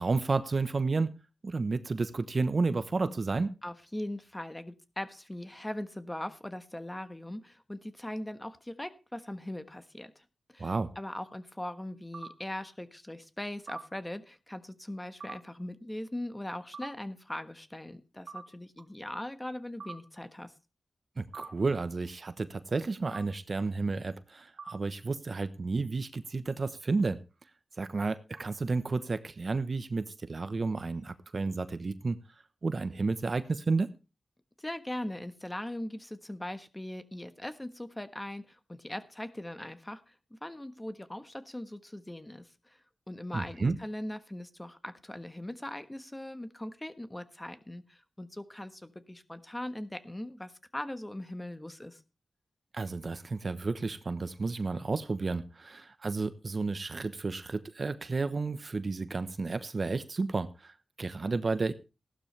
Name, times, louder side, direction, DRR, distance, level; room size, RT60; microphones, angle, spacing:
voice 1, 0.0-3.6 10.6-10.9 21.2-27.2 27.8-32.2 32.6-33.9 43.3-43.8 52.7-61.7, right 3 dB, 50° right, 12 dB, 1.0 m, -31 dB
voice 2, 3.6-10.2 10.5-20.5 34.6-42.8 43.1-52.0, left 1 dB, 15° left, 10 dB, 1.3 m, -40 dB
sound 1, 12.1-12.3 13.7-13.8 15.2-15.4 16.7-16.9 18.3-18.4 19.8-19.9 21.3-21.5 23.1-23.2 24.6-24.7, right 5 dB, 75° right, 2.1 m, -41 dB
15.5 x 12.0 x 3.3 m, 0.30 s
cardioid pair, 60°, 0 cm